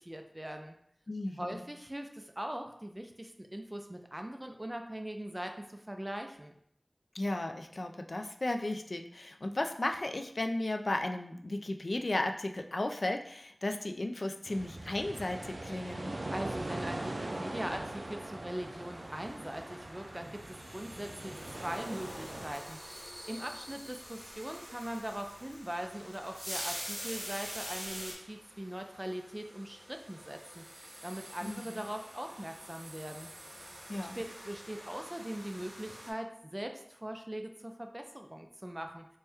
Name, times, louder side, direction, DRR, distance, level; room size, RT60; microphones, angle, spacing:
voice 1, 0.0-0.8 1.4-6.6 16.3-33.3 34.2-39.1, right 1 dB, 25° right, 4 dB, 0.4 m, -41 dB
voice 2, 1.1-1.6 7.1-16.1 31.4-31.8 33.9-34.2, left 2 dB, 75° left, 5 dB, 0.3 m, -35 dB
sound 1, 14.4-22.5, right 1 dB, 80° right, 0.4 m, -41 dB
sound 2, 16.6-36.1, equal, 50° right, 1.0 m, -51 dB
sound 3, 21.3-28.1, equal, ahead, 1.5 m, -43 dB
4.3 x 2.2 x 3.4 m, 0.70 s
wide cardioid pair, 45°, 0 cm